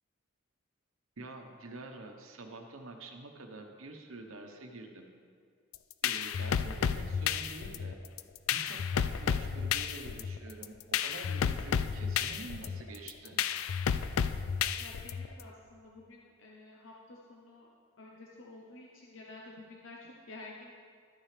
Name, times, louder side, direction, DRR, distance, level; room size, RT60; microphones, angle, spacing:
voice 1, 1.2-5.1 6.0-8.0 8.5-13.4, right 2 dB, 80° right, 4 dB, 1.0 m, -47 dB
sound 1, 5.7-15.4, left 7 dB, 85° left, 0.4 m, -32 dB
voice 2, 14.8-17.7 18.0-20.7, left 2 dB, 65° left, -2 dB, 0.9 m, -50 dB
12.5 x 9.1 x 3.3 m, 2.1 s
head